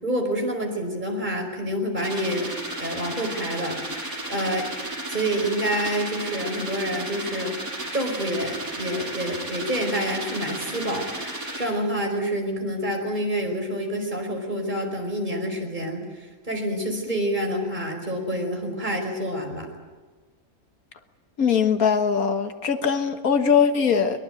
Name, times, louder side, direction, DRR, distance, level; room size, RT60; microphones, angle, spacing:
voice 1, 0.0-3.8 4.3-4.7 5.1-7.6 7.9-19.7, equal, 30° right, 2 dB, 5.2 m, -28 dB
sound 1, 2.0-11.7, right 1 dB, 80° right, 6.1 m, -33 dB
voice 2, 21.4-24.2, left 6 dB, 80° left, 8 dB, 1.9 m, -21 dB
23.0 x 22.0 x 9.1 m, 1.3 s
omnidirectional pair, 1.5 m